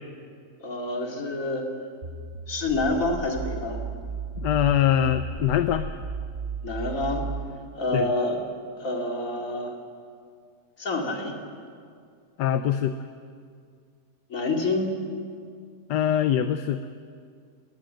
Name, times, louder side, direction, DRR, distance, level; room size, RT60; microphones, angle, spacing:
voice 1, 0.6-1.6 2.5-3.8 6.6-7.3 7.8-8.4 8.8-9.7 10.8-11.4 14.3-14.9, left 2 dB, 50° left, 1 dB, 2.9 m, -27 dB
sound 1, 2.0-7.5, right 4 dB, 40° right, 1.6 m, -34 dB
voice 2, 4.4-5.9 7.9-8.1 12.4-13.0 15.9-16.8, left 10 dB, 80° left, 10 dB, 1.3 m, -23 dB
21.0 x 18.5 x 7.7 m, 2.2 s
omnidirectional pair, 1.8 m